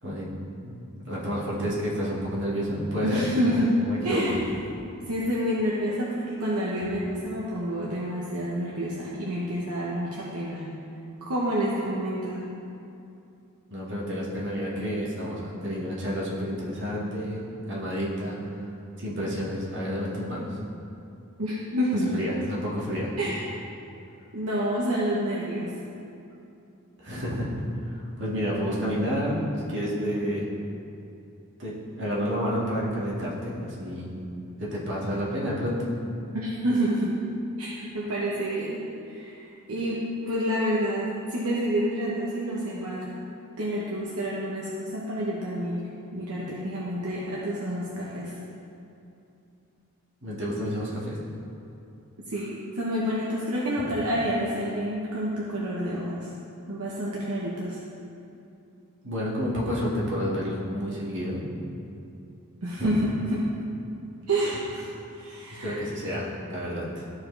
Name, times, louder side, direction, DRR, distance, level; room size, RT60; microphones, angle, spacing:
voice 1, 1.1-3.2 3.5-4.2 13.7-18.4 19.0-20.6 22.1-23.1 27.0-29.4 29.7-30.5 31.6-34.1 34.6-35.7 50.2-51.2 53.8-53.9 59.0-61.4 62.8-62.9 65.6-67.1, equal, 55° right, -6 dB, 2.0 m, -30 dB
voice 2, 3.0-3.8 4.0-4.4 5.1-10.7 11.2-12.5 21.4-22.2 23.2-23.4 24.3-25.7 36.3-37.2 37.6-38.8 39.1-43.1 43.6-45.9 46.1-48.3 52.3-56.3 56.7-57.8 62.6-63.5 64.3-65.8, equal, 75° right, -6 dB, 1.1 m, -28 dB
13.5 x 4.8 x 3.3 m, 2.7 s
head